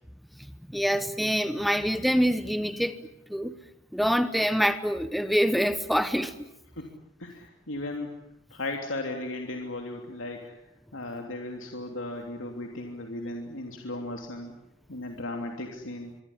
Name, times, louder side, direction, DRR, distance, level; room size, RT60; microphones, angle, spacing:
voice 1, 0.7-3.5 3.9-6.5, equal, ahead, 11 dB, 1.0 m, -26 dB
voice 2, 7.2-8.1 8.5-10.6 10.9-14.5 14.9-16.1, left 2 dB, 80° left, 2 dB, 3.2 m, -36 dB
25.5 x 23.5 x 10.0 m, 0.86 s
head